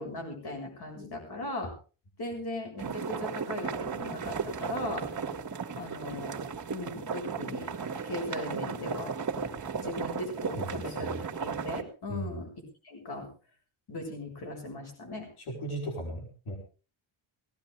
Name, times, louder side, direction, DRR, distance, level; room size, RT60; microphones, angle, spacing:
voice 1, 0.0-1.7 2.2-5.0 5.8-7.7 8.0-9.1 9.8-12.5 12.8-13.3 13.9-15.3, left 1 dB, 50° left, 2 dB, 7.2 m, -38 dB
sound 1, 2.8-11.8, right 5 dB, 35° right, 2.2 m, -35 dB
voice 2, 10.5-11.1 12.1-12.4 15.4-16.6, right 1 dB, 80° left, 1 dB, 5.4 m, -37 dB
19.5 x 17.0 x 3.5 m, 0.36 s
wide cardioid pair, 145°, 49 cm